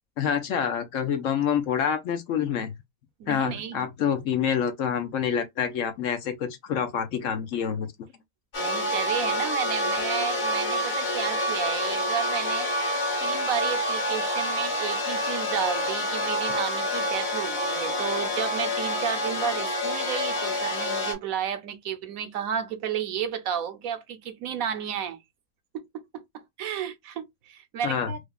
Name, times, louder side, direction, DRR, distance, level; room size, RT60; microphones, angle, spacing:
voice 1, 0.2-2.7 3.3-7.9 27.8-28.1, left 8 dB, 65° left, 1.0 m, -27 dB
voice 2, 3.2-3.9 8.6-12.7 13.2-25.2 25.7-28.2, right 8 dB, 75° right, 1.1 m, -32 dB
sound 1, 8.5-21.1, left 1 dB, 50° left, 1.6 m, -27 dB
4.8 x 2.3 x 2.3 m
omnidirectional pair, 1.5 m